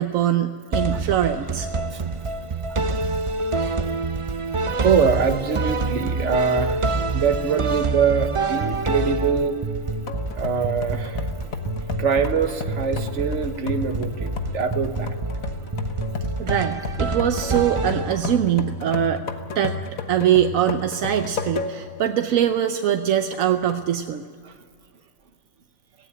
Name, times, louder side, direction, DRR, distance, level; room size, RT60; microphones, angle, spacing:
voice 1, 0.0-1.7 16.4-19.2 19.5-19.8 20.1-24.2, right 10 dB, 80° right, 7 dB, 1.1 m, -22 dB
sound 1, 0.7-18.5, right 3 dB, 35° right, 0.5 m, -27 dB
voice 2, 4.8-6.8 7.1-9.6 10.4-11.2 12.0-15.2 18.2-18.4 18.9-19.0 24.4-24.5, right 6 dB, 60° right, 8 dB, 1.5 m, -23 dB
sound 2, 10.1-22.0 22.5-22.6 23.3-23.9, left 4 dB, 90° left, 1.7 m, -33 dB
17.5 x 16.5 x 9.9 m, 2.1 s
omnidirectional pair, 1.4 m